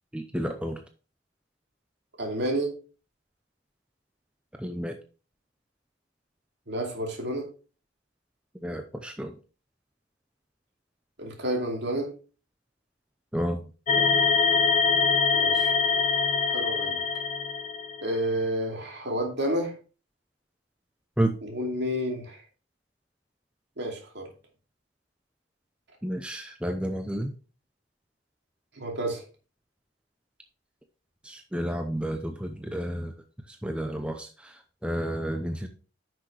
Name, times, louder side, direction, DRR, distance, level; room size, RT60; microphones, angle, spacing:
voice 1, 0.1-0.8 4.6-5.0 8.6-9.4 13.3-13.6 21.2-21.4 26.0-27.3 31.2-33.1 33.5-35.7, right 1 dB, 5° right, 5 dB, 0.6 m, -31 dB
voice 2, 2.2-2.7 6.7-7.5 11.2-12.1 15.3-15.7 16.4-17.0 18.0-19.7 21.4-22.4 23.8-24.3 28.8-29.2, right 1 dB, 60° right, 1 dB, 2.6 m, -30 dB
sound 1, 13.9-18.1, left 5 dB, 35° left, 0.6 m, -24 dB
10.0 x 6.1 x 3.3 m, 0.35 s
head